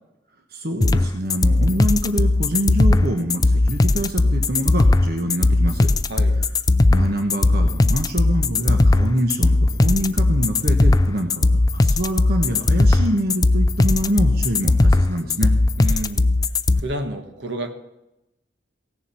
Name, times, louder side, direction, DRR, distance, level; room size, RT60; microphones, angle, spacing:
voice 1, 0.5-5.9 6.9-15.5, equal, 55° right, 4 dB, 1.2 m, -25 dB
sound 1, 0.8-16.8, left 2 dB, 20° left, 0.4 m, -17 dB
voice 2, 15.8-16.3 16.8-17.7, right 1 dB, 75° right, 5 dB, 1.4 m, -30 dB
17.0 x 7.2 x 5.7 m, 0.91 s
head